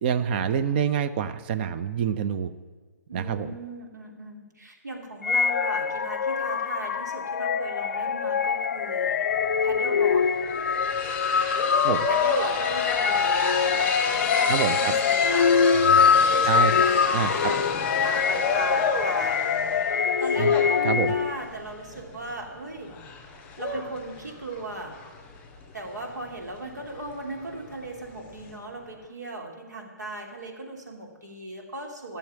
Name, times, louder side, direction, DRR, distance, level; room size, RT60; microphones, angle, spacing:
voice 1, 0.0-2.5 3.1-3.6 11.8-12.1 14.5-14.9 16.5-16.7 17.1-17.5 20.4-20.5 20.8-21.1, right 8 dB, 35° right, 10 dB, 0.7 m, -26 dB
voice 2, 3.1-9.1 9.6-10.3 12.1-17.6 18.0-22.9 23.6-25.0 25.7-32.2, right 2 dB, 75° right, 0 dB, 3.0 m, -37 dB
sound 1, 5.2-21.5, left 6 dB, 55° left, 0.5 m, -24 dB
sound 2, 9.4-9.5 9.7-28.6, left 4 dB, 20° left, 2.6 m, -32 dB
15.0 x 7.1 x 8.8 m, 1.4 s
figure-of-eight pair, 125°, 9 cm